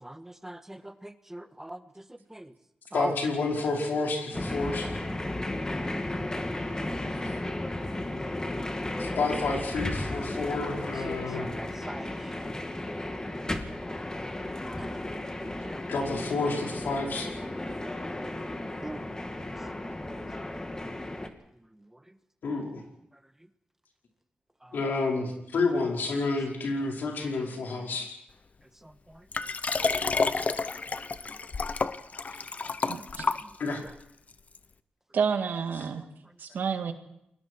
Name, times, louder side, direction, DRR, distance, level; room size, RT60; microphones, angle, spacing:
voice 1, 0.0-1.8 2.3-2.5 2.9-3.1 10.8-12.4 14.8-14.9 15.4-15.8 18.8-19.0 28.8-29.2 32.9-33.1, right 1 dB, 10° right, 9 dB, 1.6 m, -40 dB
voice 2, 2.9-5.0 9.0-11.5 15.9-17.3 22.4-22.8 24.7-28.1 33.6-33.8, left 3 dB, 90° left, 0 dB, 5.3 m, -29 dB
sound 1, 4.3-21.3, left 1 dB, 20° left, 2.5 m, -34 dB
Liquid, 29.3-33.9 34.5-34.6, left 4 dB, 50° left, 0.9 m, -30 dB
voice 3, 32.9-33.3 35.1-36.0 36.4-36.9, right 6 dB, 90° right, 6 dB, 2.0 m, -29 dB
29.5 x 21.5 x 4.8 m, 0.76 s
cardioid pair, 75°, 3 cm